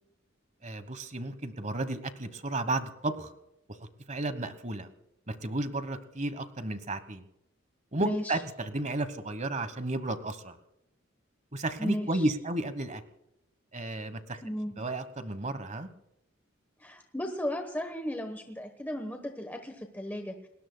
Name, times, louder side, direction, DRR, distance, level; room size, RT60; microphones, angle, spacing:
voice 1, 0.6-3.3 3.7-4.9 5.3-7.2 7.9-10.6 11.5-13.0 13.7-14.4 14.8-15.9, right 2 dB, 35° right, 12 dB, 1.2 m, -33 dB
voice 2, 8.0-8.3 11.8-12.3 14.4-14.7 16.8-20.3, equal, 10° left, 5 dB, 1.1 m, -35 dB
29.0 x 20.0 x 2.3 m, 0.85 s
head